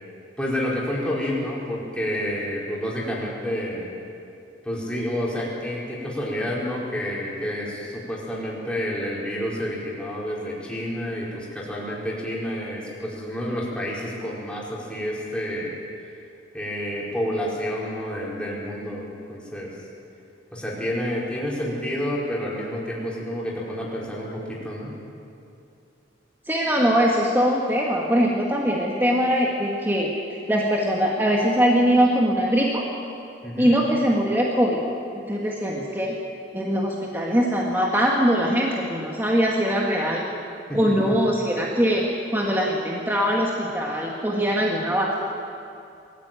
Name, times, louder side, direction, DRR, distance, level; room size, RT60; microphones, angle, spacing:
voice 1, 0.4-3.9 4.6-15.8 16.5-19.7 20.5-24.9 33.4-33.7 40.7-41.0, equal, 5° left, -6 dB, 4.6 m, -29 dB
voice 2, 26.5-32.9 33.6-34.8 35.3-36.2 36.5-40.3 40.7-42.0 42.3-45.2, equal, 10° right, -3 dB, 1.9 m, -22 dB
22.5 x 14.5 x 9.1 m, 2.5 s
head